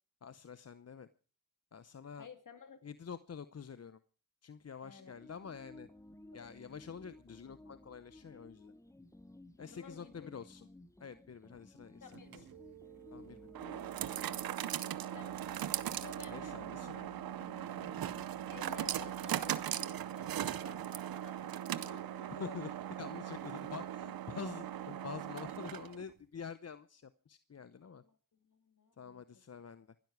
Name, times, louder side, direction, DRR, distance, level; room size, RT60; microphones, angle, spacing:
voice 1, 0.2-1.1 1.7-2.3 2.8-4.0 4.4-5.9 6.3-8.7 9.6-10.7 11.0-12.5 13.1-13.5 16.3-17.1 22.4-22.7 23.0-28.0 29.0-29.9, left 6 dB, 45° left, 14 dB, 0.7 m, -47 dB
voice 2, 2.2-2.8 4.8-5.1 6.3-6.5 9.6-10.3 12.0-12.4 15.1-15.6 16.0-16.6 18.5-22.6 27.8-29.2, left 5 dB, 65° left, 8 dB, 2.4 m, -54 dB
sound 1, 5.0-19.8, left 1 dB, 10° left, 1.0 m, -57 dB
sound 2, 12.1-26.1, right 11 dB, 90° right, 0.7 m, -39 dB
21.5 x 12.0 x 4.7 m, 0.40 s
cardioid pair, 40°, 34 cm